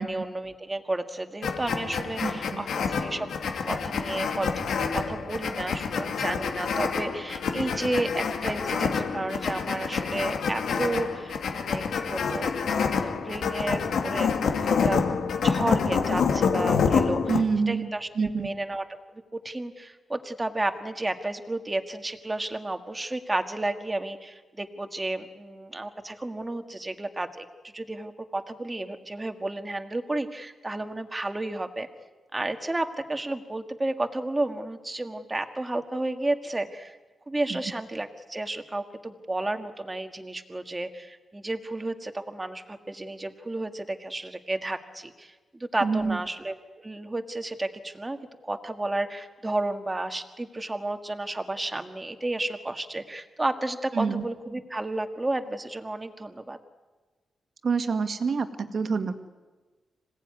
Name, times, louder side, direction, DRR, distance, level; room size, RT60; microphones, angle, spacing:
voice 1, 0.0-12.5 13.0-14.3 14.8-15.1 15.4-17.4 17.7-18.8 19.3-27.4 27.7-31.9 32.3-37.0 37.3-48.2 48.4-56.6, right 2 dB, 15° right, 7 dB, 1.7 m, -32 dB
sound 1, 1.4-17.4, left 6 dB, 85° left, 2.5 m, -27 dB
voice 2, 2.2-2.6 17.3-18.5 37.5-37.6 45.8-46.2 53.9-54.2 57.6-59.1, right 5 dB, 50° right, 8 dB, 1.8 m, -27 dB
26.0 x 17.5 x 9.6 m, 1.3 s
wide cardioid pair, 125°, 0 cm